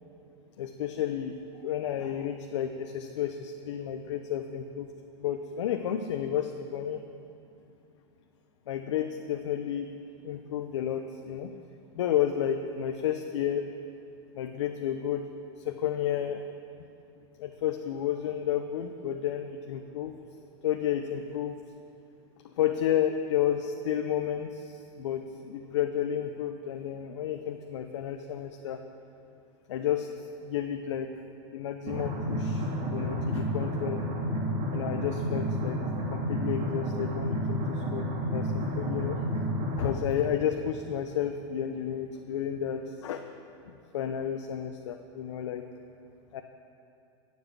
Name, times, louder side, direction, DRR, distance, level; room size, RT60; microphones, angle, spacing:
voice 1, 0.6-4.9 5.2-7.0 8.7-9.9 10.2-11.5 11.9-13.6 14.3-15.3 15.6-16.4 17.4-20.1 20.6-21.6 22.6-28.8 29.7-30.1 30.4-31.1 31.5-34.0 34.7-35.8 36.1-39.2 39.8-43.2 43.9-45.7 46.3-46.4, left 9 dB, 80° left, 6 dB, 0.8 m, -31 dB
sound 1, 31.9-39.9, equal, 40° right, 3.0 m, -31 dB
17.5 x 7.5 x 7.5 m, 2.6 s
supercardioid pair, 125°, 15 cm